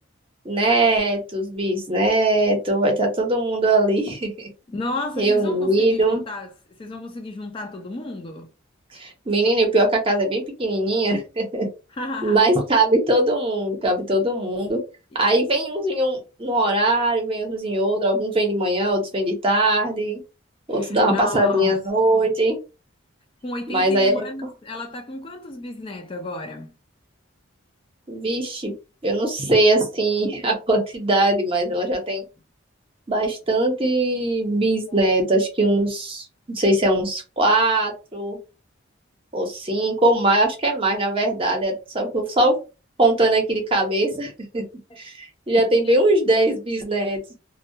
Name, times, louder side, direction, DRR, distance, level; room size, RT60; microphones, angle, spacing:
voice 1, 0.4-4.5 5.2-6.2 8.9-11.7 12.2-14.8 15.2-20.2 20.7-22.6 23.7-24.3 28.1-28.7 29.0-32.2 33.1-38.4 39.3-42.6 43.0-44.6 45.0-47.2, right 1 dB, 25° right, 0.6 m, -21 dB
voice 2, 4.7-6.5 6.8-8.5 12.0-12.5 20.7-21.8 23.4-26.7 34.9-35.0 44.9-45.0, left 2 dB, 25° left, 0.3 m, -32 dB
2.2 x 2.1 x 2.6 m
head